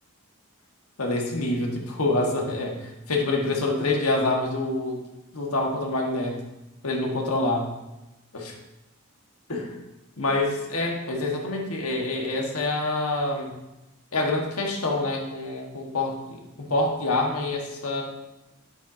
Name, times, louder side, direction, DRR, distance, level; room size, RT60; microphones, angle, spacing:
voice 1, 1.0-5.0 5.3-6.4 6.8-7.7 8.3-8.5 9.5-9.7 10.2-13.5 14.1-18.0, left 2 dB, 85° left, 1 dB, 1.5 m, -26 dB
9.6 x 8.0 x 2.8 m, 0.98 s
head